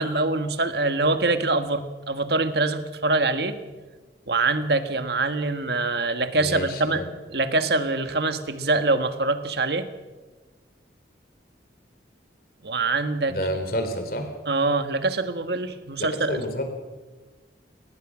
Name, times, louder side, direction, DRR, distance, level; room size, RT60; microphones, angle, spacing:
voice 1, 0.0-3.6 4.3-7.0 7.3-9.9 12.6-13.3 14.5-16.4, right 3 dB, 60° right, 9 dB, 1.6 m, -24 dB
voice 2, 6.4-7.1 13.3-14.3 16.2-16.6, equal, 55° left, 6 dB, 3.6 m, -29 dB
23.0 x 20.0 x 6.4 m, 1.3 s
head